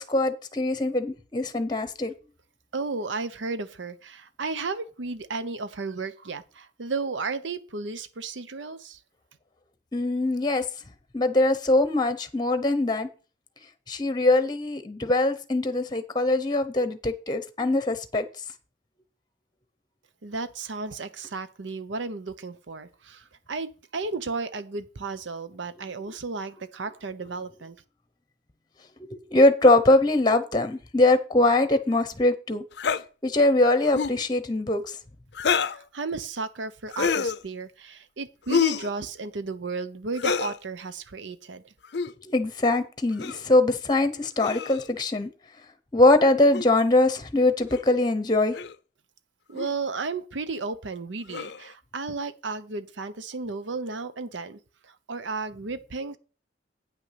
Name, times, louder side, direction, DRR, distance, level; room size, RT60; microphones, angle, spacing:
voice 1, 0.0-2.1 9.9-10.6 11.1-13.1 13.9-18.3 29.1-32.6 33.2-35.0 42.2-45.3 45.9-48.6, left 2 dB, 25° left, 0.8 m, -22 dB
voice 2, 2.7-9.0 20.2-27.8 35.6-41.7 49.5-56.2, right 4 dB, 90° right, 0.8 m, -34 dB
sound 1, 32.8-33.0 33.9-34.2 35.3-35.8 36.9-37.4 38.5-38.9 40.2-40.6 41.8-42.1 43.2-43.4 44.4-44.9 46.5-46.7 47.7-47.8 48.5-48.8 49.5-49.7 51.3-51.7, left 5 dB, 65° left, 0.5 m, -27 dB
9.0 x 6.0 x 5.7 m
head